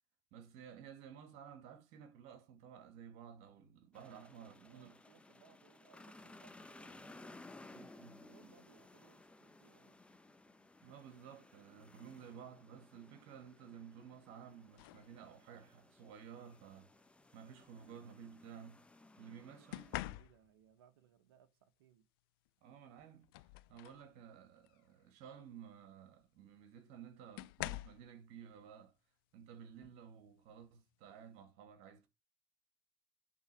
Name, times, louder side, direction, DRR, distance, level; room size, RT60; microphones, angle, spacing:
voice 1, 0.3-5.0 7.7-8.2 10.8-16.9 17.3-18.9 19.2-20.0 22.6-23.3 23.7-29.0 29.3-32.1, right 8 dB, 65° right, 2.1 m, -54 dB
sound 1, 3.9-20.0, left 2 dB, 10° left, 0.9 m, -59 dB
voice 2, 3.9-7.5 8.2-10.0 19.3-22.1, right 9 dB, 80° right, 1.1 m, -67 dB
sound 2, 14.8-15.1 16.4-16.6 19.7-20.7 22.5-22.6 23.0-24.1 24.6-24.8 26.2-26.3 27.4-28.1 29.8-30.0 30.5-30.8, left 18 dB, 75° left, 0.4 m, -46 dB
8.3 x 3.9 x 4.8 m
hypercardioid pair, 85°, 12 cm